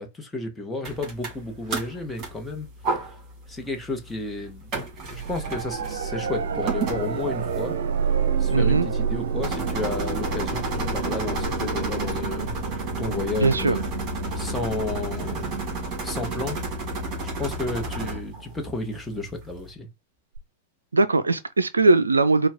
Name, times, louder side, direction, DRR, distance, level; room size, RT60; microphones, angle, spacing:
voice 1, 0.0-3.0 3.5-4.7 5.1-7.8 8.4-13.8 14.3-15.6 16.0-16.6 17.2-19.9, left 3 dB, 10° left, 1.1 m, -32 dB
sound 1, 0.8-19.7, right 2 dB, 35° right, 2.3 m, -33 dB
sound 2, 5.1-18.0 20.4-20.5, right 6 dB, 65° right, 0.7 m, -30 dB
voice 2, 8.5-8.9 13.4-13.8 20.9-22.5, right 3 dB, 85° right, 0.4 m, -20 dB
4.4 x 2.3 x 3.5 m
figure-of-eight pair, 100°, 0 cm